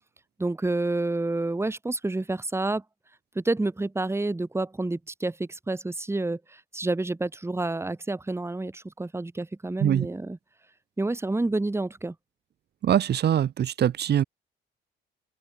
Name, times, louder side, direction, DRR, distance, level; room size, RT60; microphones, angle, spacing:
voice 1, 0.4-2.8 3.4-10.4 11.0-12.2, right 2 dB, 15° right, 1.8 m, -29 dB
voice 2, 12.8-14.2, right 10 dB, 55° right, 1.0 m, -23 dB
open air
cardioid pair, 90°, 20 cm